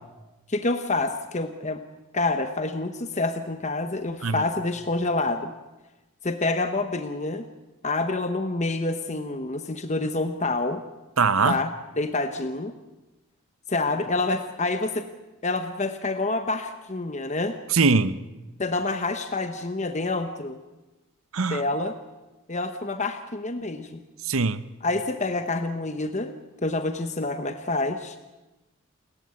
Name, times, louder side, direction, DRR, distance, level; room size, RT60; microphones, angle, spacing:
voice 1, 0.5-1.8 2.1-5.5 6.2-7.4 7.8-10.8 11.4-11.7 12.0-12.7 13.7-15.1 15.4-17.6 18.6-20.6 21.5-21.9 22.5-24.0 24.8-26.3 26.6-28.2, left 2 dB, 35° left, 8 dB, 1.0 m, -27 dB
voice 2, 11.2-11.6 17.7-18.2 21.3-21.6 24.2-24.6, right 4 dB, 75° right, 15 dB, 0.9 m, -22 dB
29.5 x 14.5 x 9.6 m, 1.1 s
head